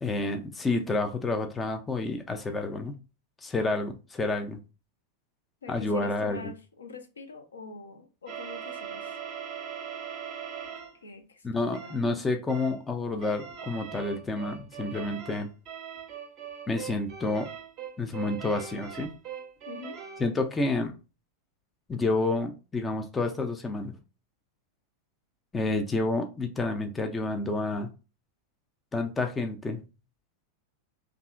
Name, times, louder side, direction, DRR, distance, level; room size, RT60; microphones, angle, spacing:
voice 1, 0.0-3.0 3.4-4.6 5.7-6.5 11.4-15.5 16.7-17.5 18.0-19.1 20.2-21.0 21.9-24.0 25.5-27.9 28.9-29.8, left 2 dB, 15° left, 0.4 m, -29 dB
voice 2, 5.6-9.2 11.0-12.0 19.7-20.0, left 4 dB, 70° left, 0.5 m, -44 dB
sound 1, 8.3-11.0 11.7-12.1 12.5-12.8 13.2-20.3, right 8 dB, 35° right, 0.6 m, -41 dB
2.7 x 2.4 x 2.4 m
figure-of-eight pair, 90°, 0 cm